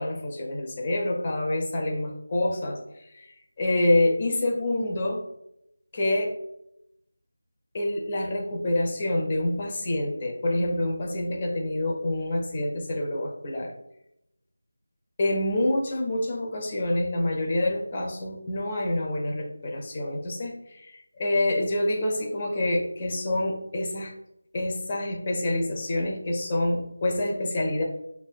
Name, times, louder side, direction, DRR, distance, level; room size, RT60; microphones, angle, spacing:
voice 1, 0.0-3.3 3.6-5.2 5.9-6.3 7.7-13.7 15.2-24.1 24.5-27.8, left 1 dB, 25° left, 1 dB, 0.6 m, -27 dB
5.6 x 2.6 x 2.2 m, 0.81 s
figure-of-eight pair, 170°, 0 cm